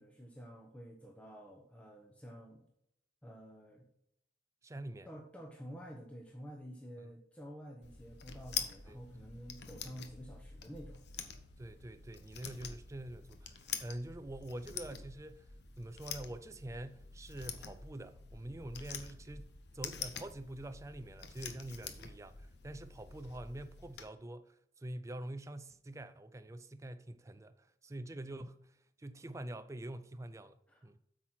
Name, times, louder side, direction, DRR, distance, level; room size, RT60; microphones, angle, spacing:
voice 1, 0.0-2.6 3.2-3.9 5.1-11.0 30.7-31.0, equal, 5° left, 1.0 m, -50 dB
voice 2, 4.6-5.1 7.0-7.1 8.9-9.0 11.6-31.0, right 1 dB, 15° right, 0.4 m, -46 dB
sound 1, 7.8-24.0, left 7 dB, 65° left, 1.0 m, -46 dB
8.4 x 6.1 x 4.3 m
head